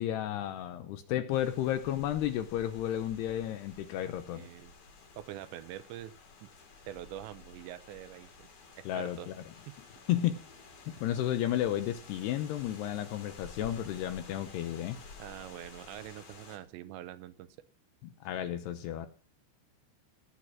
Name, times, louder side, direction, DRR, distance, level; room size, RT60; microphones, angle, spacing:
voice 1, 0.0-4.5 8.9-9.3 10.1-10.4 10.9-15.0 18.2-19.1, left 11 dB, 75° left, 9 dB, 2.6 m, -32 dB
sound 1, 1.3-16.6, left 4 dB, 50° left, 4.2 m, -52 dB
voice 2, 4.3-4.7 5.2-6.1 6.4-6.5 6.9-8.5 8.8-9.3 9.7-9.8 15.2-17.5, right 13 dB, 80° right, 12 dB, 2.9 m, -44 dB
18.0 x 8.3 x 6.0 m, 0.41 s
omnidirectional pair, 5.4 m